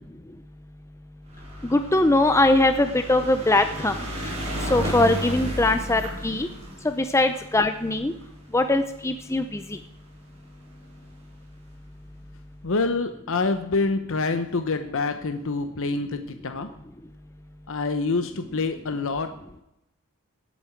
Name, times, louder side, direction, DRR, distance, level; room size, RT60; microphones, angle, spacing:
sound 1, 1.3-9.8 10.6-10.7 10.9-11.0 11.2-11.3, equal, 30° right, 3.6 m, -33 dB
voice 1, 1.6-4.0 4.7-6.5 6.8-8.1 8.5-9.6, left 2 dB, 10° left, 8 dB, 0.5 m, -21 dB
voice 2, 12.6-16.7 17.7-19.3, left 3 dB, 60° left, 8 dB, 0.8 m, -26 dB
17.5 x 8.6 x 4.5 m, 0.84 s
head